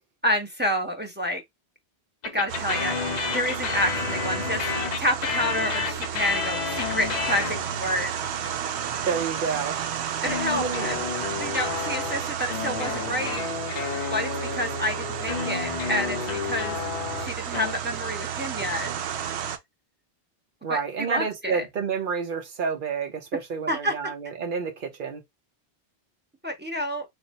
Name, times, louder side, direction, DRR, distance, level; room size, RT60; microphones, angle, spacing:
voice 1, 0.2-1.4 2.3-3.0 3.3-8.1 10.2-11.0 11.4-13.4 14.1-16.8 17.1-18.9 20.7-21.7 23.7-23.9 26.4-27.0, equal, 10° right, 0.7 m, -29 dB
sound 1, 2.2-8.0 10.2-17.7, left 7 dB, 50° left, 0.6 m, -31 dB
sound 2, 2.5-19.6, right 8 dB, 90° right, 0.9 m, -32 dB
voice 2, 9.0-9.8 10.5-10.9 20.6-25.2, right 5 dB, 55° right, 0.9 m, -29 dB
3.4 x 2.1 x 4.0 m
omnidirectional pair, 1.1 m